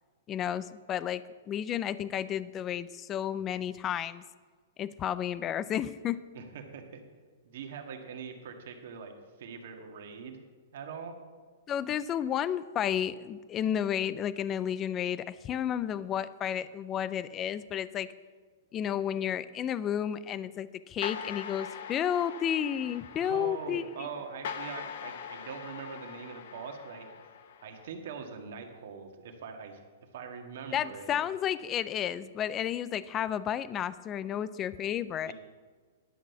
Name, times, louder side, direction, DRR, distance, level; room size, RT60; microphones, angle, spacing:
voice 1, 0.3-1.2 1.5-4.2 4.8-6.2 11.7-18.1 18.7-24.1 30.7-35.3, left 9 dB, 20° left, 16 dB, 0.4 m, -32 dB
voice 2, 6.3-7.0 7.4-9.1 9.4-10.4 10.7-11.2 23.2-27.1 27.6-29.8 30.1-31.2 35.2-35.3, right 6 dB, 60° right, 4 dB, 1.7 m, -42 dB
sound 1, 21.0-27.9, left 7 dB, 60° left, 0.9 m, -42 dB
11.0 x 6.1 x 6.9 m, 1.5 s
hypercardioid pair, 150°, 0 cm